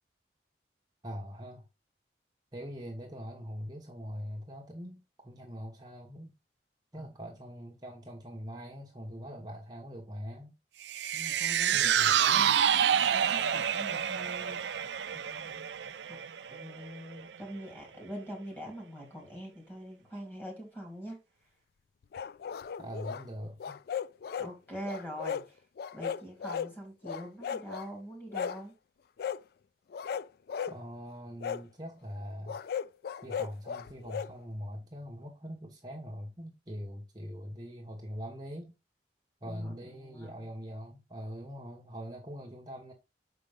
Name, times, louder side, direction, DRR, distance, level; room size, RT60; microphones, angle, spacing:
voice 1, 1.0-1.7 2.5-6.3 6.9-10.6 11.7-12.6 22.8-23.8 30.7-32.6 33.2-38.8 39.4-42.9, equal, 25° right, 1.0 m, -42 dB
sound 1, 10.9-17.3 17.7-17.8, right 9 dB, 80° right, 0.5 m, -28 dB
voice 2, 11.1-12.5 13.1-14.6 15.1-15.7 16.1-16.2 16.5-21.2 24.4-25.6 25.9-28.7 39.4-40.5, equal, 10° left, 2.8 m, -44 dB
sound 2, 22.1-23.2 23.6-24.5 24.9-25.5 25.8-26.7 27.0-27.9 28.3-28.6 29.2-29.4 29.9-30.8 31.4-31.6 32.5-34.3, left 7 dB, 60° left, 0.3 m, -36 dB
6.4 x 5.2 x 3.5 m
head